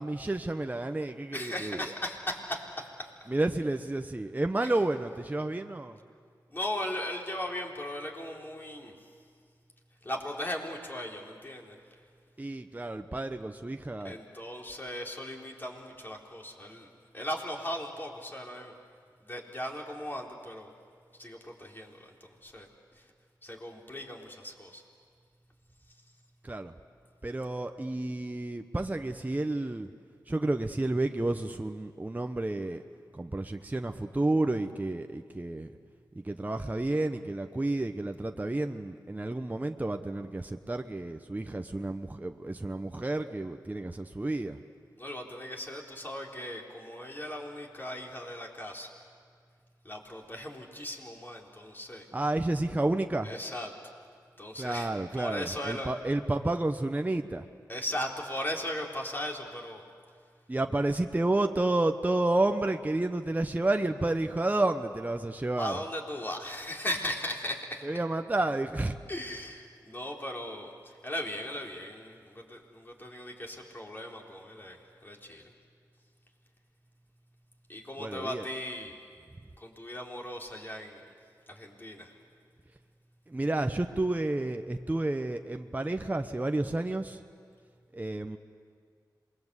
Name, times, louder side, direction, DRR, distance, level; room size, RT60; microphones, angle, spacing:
voice 1, 0.0-1.8 3.3-6.0 12.4-14.1 26.5-26.7 27.2-29.9 30.3-32.8 33.2-35.7 36.3-44.6 52.1-53.3 54.6-57.4 60.5-65.8 67.8-69.0 78.0-78.4 83.3-87.2 87.9-88.4, right 2 dB, 20° right, 6 dB, 1.0 m, -30 dB
voice 2, 1.3-3.1 4.6-4.8 6.5-8.9 10.0-11.8 14.0-16.9 17.1-18.7 19.2-20.7 21.2-22.7 23.4-24.8 45.0-48.9 49.8-52.0 53.2-53.7 54.4-55.9 57.7-59.8 65.6-67.9 69.1-70.7 71.0-74.8 75.0-75.4 77.7-78.9 79.6-81.0 81.5-82.1, left 1 dB, 25° left, 0 dB, 4.0 m, -38 dB
27.0 x 21.5 x 8.2 m, 2.1 s
cardioid pair, 55°, 8 cm